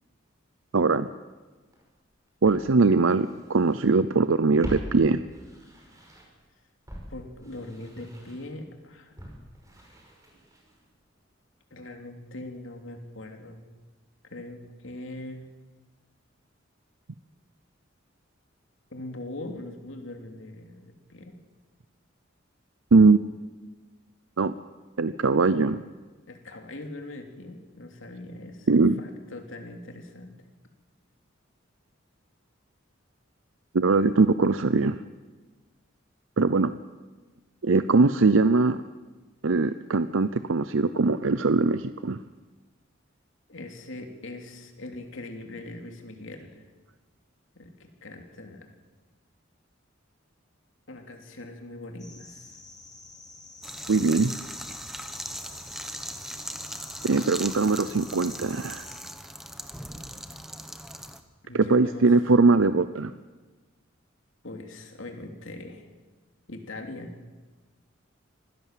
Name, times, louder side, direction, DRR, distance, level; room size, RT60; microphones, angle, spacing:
voice 1, 0.7-1.1 2.4-5.2 22.9-23.2 24.4-24.5 25.0-25.8 28.7-29.0 33.7-35.0 36.4-36.7 37.6-38.8 39.4-42.2 53.9-54.3 57.0-58.9 61.5-63.1, right 3 dB, 80° right, 13 dB, 0.6 m, -21 dB
Walk footsteps, 1.7-1.8 2.4-3.9 4.2-6.5 6.9-10.9 11.2-11.3, equal, 15° right, 5.6 m, -43 dB
voice 2, 7.1-9.1 11.7-13.6 14.3-15.5 18.9-21.4 26.3-28.7 29.0-30.4 43.5-46.6 47.5-48.7 50.9-52.6 61.4-62.1 64.4-65.9 66.5-67.2, left 2 dB, 75° left, 4 dB, 3.1 m, -41 dB
sound 1, 52.0-59.0, left 3 dB, 20° left, 3.8 m, -49 dB
sound 2, 53.6-61.2, equal, ahead, 1.3 m, -39 dB
25.0 x 17.0 x 7.5 m, 1.3 s
head